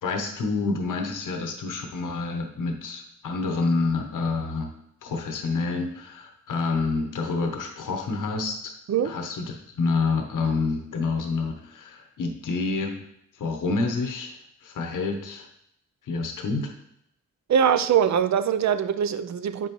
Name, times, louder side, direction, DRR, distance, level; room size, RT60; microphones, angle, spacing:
voice 1, 0.0-4.7 5.0-8.7 9.0-13.0 13.4-14.3 14.6-15.5 16.1-16.7, left 3 dB, 90° left, 0.9 m, -28 dB
voice 2, 17.5-19.7, right 8 dB, 65° right, 0.5 m, -22 dB
7.6 x 5.5 x 3.0 m
cardioid pair, 55°, 30 cm